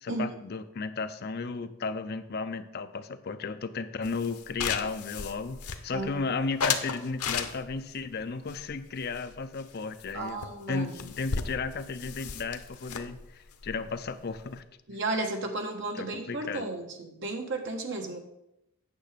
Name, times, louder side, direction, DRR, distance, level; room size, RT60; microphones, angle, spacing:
voice 1, 0.0-10.4 10.7-14.6 15.9-16.7, left 4 dB, 45° left, 11 dB, 0.5 m, -34 dB
sound 1, 4.0-6.1 6.6-7.9 8.5-9.7 10.0-10.1 10.4-10.5 10.7-14.6, left 6 dB, 90° left, 0.8 m, -35 dB
voice 2, 5.9-6.2 10.1-10.9 14.9-18.2, right 2 dB, 55° right, 3 dB, 1.3 m, -33 dB
9.0 x 6.3 x 5.0 m, 0.84 s
head